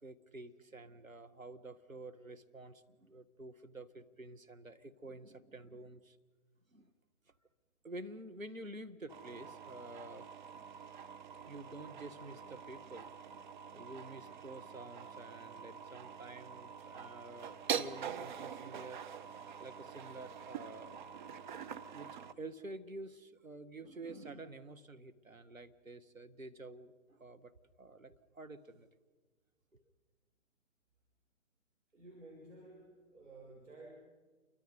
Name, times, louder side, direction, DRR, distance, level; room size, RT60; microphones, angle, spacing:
voice 1, 0.0-6.2 6.7-6.9 7.8-10.9 11.5-13.1 13.7-19.0 19.6-21.1 21.4-27.5 27.8-28.9 29.7-29.8, right 2 dB, 90° right, 8 dB, 1.8 m, -50 dB
sound 1, 9.1-22.3, right 7 dB, 35° right, 1.1 m, -45 dB
voice 2, 31.9-33.9, right 2 dB, 70° right, -1 dB, 6.1 m, -54 dB
29.0 x 23.5 x 5.4 m, 1.4 s
figure-of-eight pair, 135°, 39 cm